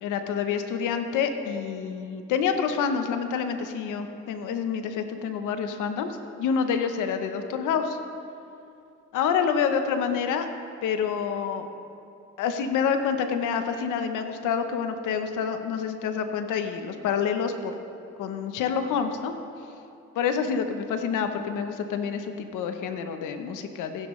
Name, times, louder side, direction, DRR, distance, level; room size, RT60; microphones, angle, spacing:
voice 1, 0.0-8.0 9.1-10.5 10.8-11.7 12.4-17.7 18.2-19.3 20.2-24.1, left 6 dB, 90° left, 7 dB, 0.9 m, -27 dB
15.5 x 10.0 x 3.2 m, 2.6 s
cardioid pair, 90°, 30 cm